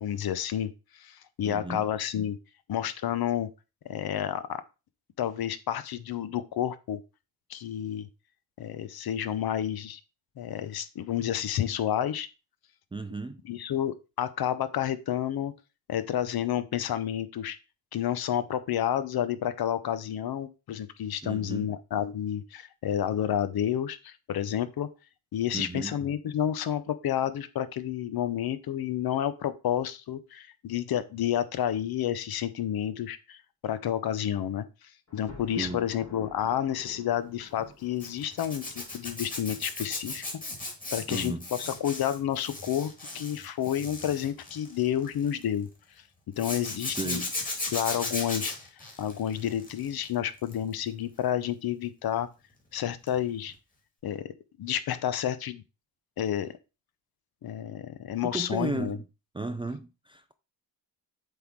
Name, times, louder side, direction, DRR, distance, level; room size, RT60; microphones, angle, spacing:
voice 1, 0.0-2.4 2.7-3.5 3.8-4.6 5.2-7.0 7.5-8.1 8.6-10.0 10.4-12.3 13.5-15.5 15.9-17.6 17.9-24.9 25.3-40.3 40.9-45.7 46.4-47.2 47.7-48.5 49.0-52.3 52.7-53.5 54.0-54.2 54.6-55.6 56.2-56.5 57.4-59.0, left 10 dB, 60° left, 0.8 m, -30 dB
voice 2, 1.4-1.9 12.9-13.4 21.2-21.7 25.5-26.0 35.6-35.9 41.1-41.5 46.8-47.3 58.3-59.0 59.3-60.3, right 3 dB, 15° right, 0.4 m, -34 dB
Thunder, 35.1-39.2, left 3 dB, 35° left, 3.4 m, -50 dB
Zipper (clothing), 38.0-45.4 46.4-50.0 50.4-50.7 53.1-53.2 53.5-53.6, left 2 dB, 20° left, 2.5 m, -36 dB
7.8 x 3.7 x 4.5 m
cardioid pair, 125°, 43 cm